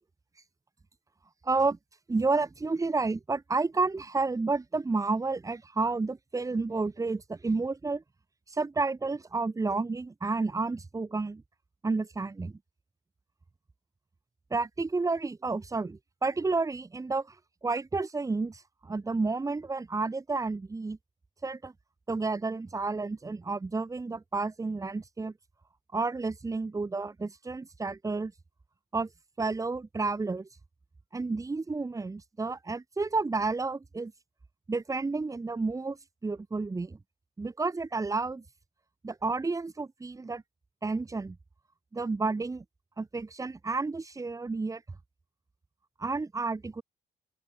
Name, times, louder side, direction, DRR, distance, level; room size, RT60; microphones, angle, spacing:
voice 1, 1.4-1.8 2.1-8.0 8.5-11.4 11.8-12.5 14.5-17.4 17.6-21.0 21.4-21.7 22.1-25.3 25.9-28.3 28.9-29.1 29.4-30.5 31.1-34.1 34.7-36.0 36.2-37.0 37.4-38.4 39.0-40.4 40.8-41.4 41.9-42.6 43.0-44.8 46.0-46.8, right 3 dB, 20° right, 4.9 m, -31 dB
open air
cardioid pair, 110°, 17 cm